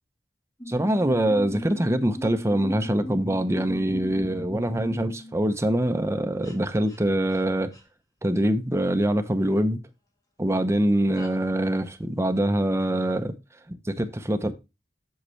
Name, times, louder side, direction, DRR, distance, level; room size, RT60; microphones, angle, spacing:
sound 1, 0.6-5.4 6.4-6.6 6.9-7.0 7.3-7.4 7.7-7.8 11.2-11.7, equal, 20° left, 1.6 m, -38 dB
voice 1, 0.7-7.7 8.2-9.8 10.4-13.3 13.7-14.5, right 1 dB, 15° right, 0.7 m, -24 dB
7.9 x 7.5 x 3.1 m
head